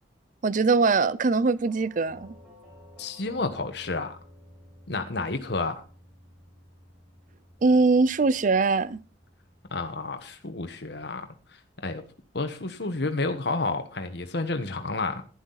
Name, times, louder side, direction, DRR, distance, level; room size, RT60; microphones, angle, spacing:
voice 1, 0.4-2.3 7.6-9.0, right 4 dB, 45° right, 0.5 m, -22 dB
Doorbell, 1.7-10.5, left 1 dB, 5° right, 6.1 m, -54 dB
voice 2, 3.0-4.2 4.9-5.8 9.7-11.3 11.8-12.0 12.3-15.2, left 3 dB, 60° left, 1.2 m, -30 dB
11.5 x 11.0 x 4.0 m
head